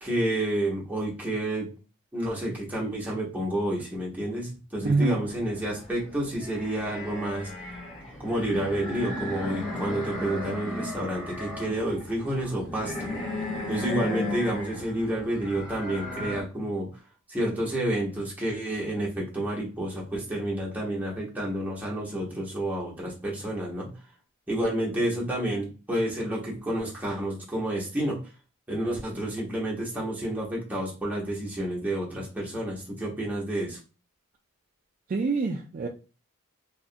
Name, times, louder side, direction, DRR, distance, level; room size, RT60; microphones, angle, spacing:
voice 1, 0.0-1.7 2.1-7.5 8.2-13.1 13.7-16.9 17.3-23.9 24.5-28.2 28.7-33.8, right 1 dB, 10° right, -4 dB, 0.8 m, -30 dB
voice 2, 4.8-5.2 35.1-35.9, right 3 dB, 40° right, 1 dB, 0.3 m, -25 dB
sound 1, 5.3-16.4, left 1 dB, 65° left, 1.1 m, -35 dB
2.8 x 2.4 x 2.4 m, 0.34 s
head